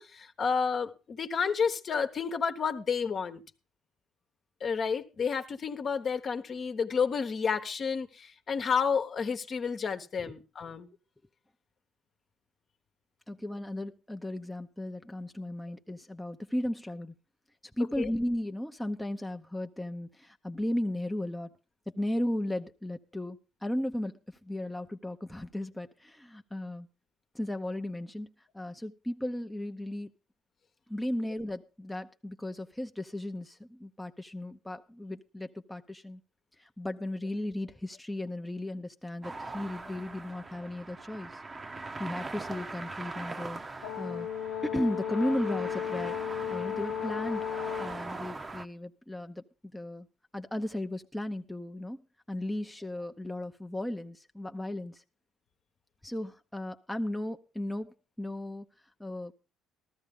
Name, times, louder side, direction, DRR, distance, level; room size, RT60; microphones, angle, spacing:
voice 1, 0.0-3.4 4.6-10.9 18.0-18.1, left 6 dB, 50° left, 1.1 m, -30 dB
voice 2, 13.3-17.1 17.8-21.5 21.9-26.9 27.3-30.1 30.9-36.2 36.6-41.4 42.0-44.3 44.6-49.4 49.7-50.1 50.3-52.0 52.3-55.0 56.0-58.7 59.0-59.3, left 1 dB, 5° left, 0.7 m, -35 dB
sound 1, 39.2-48.7, right 3 dB, 30° right, 0.9 m, -41 dB
Brass instrument, 43.8-48.0, left 9 dB, 80° left, 0.6 m, -34 dB
14.0 x 13.5 x 3.7 m
hypercardioid pair, 60°, 0 cm